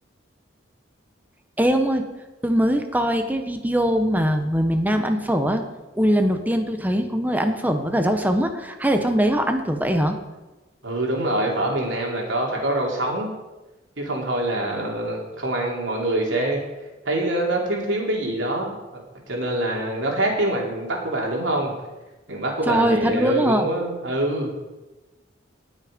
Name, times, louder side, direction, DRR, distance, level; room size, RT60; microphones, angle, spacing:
voice 1, 1.6-2.1 2.4-5.6 6.0-10.2 22.7-23.7, equal, 10° right, 6 dB, 1.0 m, -21 dB
voice 2, 10.8-13.3 14.0-16.6 17.0-19.0 19.3-21.7 22.3-24.5, right 1 dB, 80° right, -1 dB, 3.2 m, -25 dB
18.5 x 6.5 x 5.2 m, 1.1 s
head